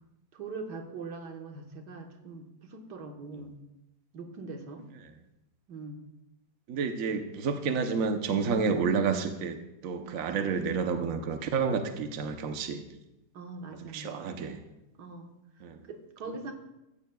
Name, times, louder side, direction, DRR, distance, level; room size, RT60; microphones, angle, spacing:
voice 1, 0.3-3.6 4.1-4.9 5.7-6.0 13.3-14.3 15.0-15.4 15.9-16.5, right 3 dB, 85° right, 3 dB, 1.9 m, -42 dB
voice 2, 6.7-9.6 9.8-12.8 13.9-14.6 15.6-15.8, right 5 dB, 60° right, 6 dB, 1.2 m, -29 dB
16.0 x 13.5 x 2.3 m, 0.91 s
omnidirectional pair, 1.8 m